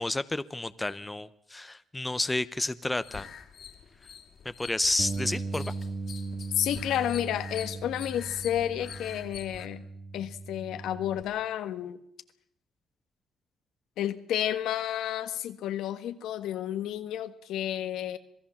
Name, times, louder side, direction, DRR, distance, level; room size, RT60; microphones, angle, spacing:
voice 1, 0.0-3.3 4.6-5.7, left 2 dB, 15° left, 14 dB, 0.8 m, -30 dB
sound 1, 3.0-9.7, left 8 dB, 65° left, 2.8 m, -46 dB
Bass guitar, 5.0-11.2, right 3 dB, 45° right, 2.6 m, -38 dB
voice 2, 6.6-9.8 10.1-12.0 14.0-18.2, left 11 dB, 85° left, 10 dB, 1.5 m, -31 dB
26.5 x 17.0 x 7.3 m, 0.75 s
cardioid pair, 90°, 0 cm